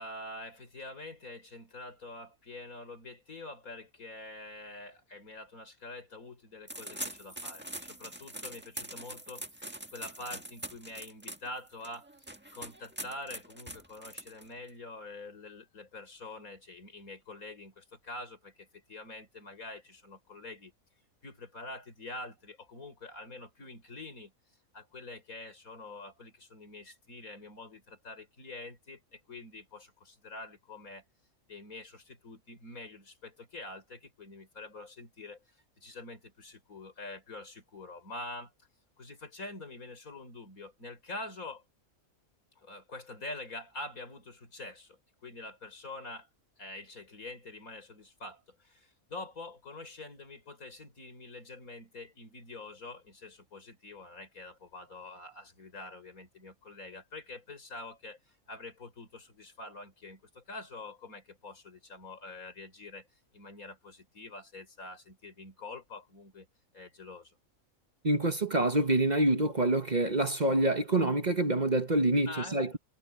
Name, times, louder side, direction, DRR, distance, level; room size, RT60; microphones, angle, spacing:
voice 1, 0.0-12.1 12.5-20.7 21.2-24.3 24.7-31.0 31.5-38.5 39.0-41.6 42.6-46.3 46.6-63.1 63.3-66.5 66.7-67.4 72.3-72.8, left 2 dB, 85° left, 5.1 m, -46 dB
sound 1, 6.7-14.7, right 1 dB, 10° right, 1.5 m, -43 dB
voice 2, 68.0-72.8, right 2 dB, 35° right, 1.2 m, -26 dB
omnidirectional pair, 1.4 m